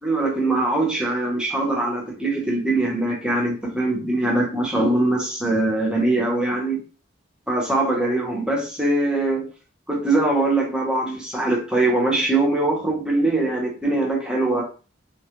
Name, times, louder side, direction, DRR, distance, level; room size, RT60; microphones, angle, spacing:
voice 1, 0.0-6.8 7.5-9.5 9.9-14.6, right 2 dB, 5° right, -3 dB, 0.6 m, -22 dB
2.3 x 2.0 x 2.8 m, 0.35 s
head